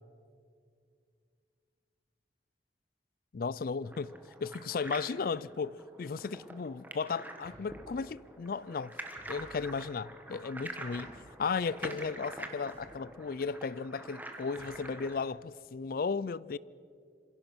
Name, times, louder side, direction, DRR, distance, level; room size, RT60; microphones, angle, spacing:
voice 1, 3.3-4.1 4.4-8.9 9.3-16.6, left 5 dB, 50° left, 0.4 m, -35 dB
sound 1, 3.8-15.2, right 1 dB, 10° right, 1.4 m, -46 dB
Thump thud, 7.4-8.0 9.1-9.7 10.9-11.5 12.7-13.1 14.5-14.9, equal, 10° left, 3.2 m, -55 dB
26.5 x 16.5 x 6.1 m
head